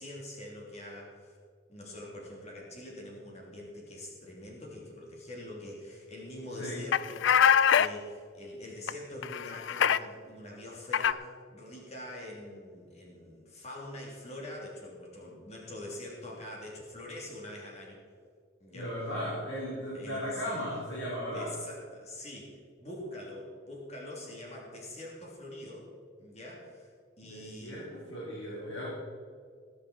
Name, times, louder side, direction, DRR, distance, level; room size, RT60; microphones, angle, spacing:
voice 1, 0.0-1.4 1.7-7.3 7.7-18.0 18.6-18.9 19.9-20.6 21.3-25.9 26.2-26.9 27.2-27.8, left 1 dB, 35° left, -3 dB, 3.0 m, -44 dB
sound 1, 6.9-7.9 8.9-9.0 9.2-10.0 10.9-11.1, left 8 dB, 70° left, 0.4 m, -23 dB
voice 2, 18.7-21.5 27.3-28.9, equal, 85° left, -7 dB, 4.2 m, -36 dB
19.0 x 9.8 x 4.3 m, 2.1 s
head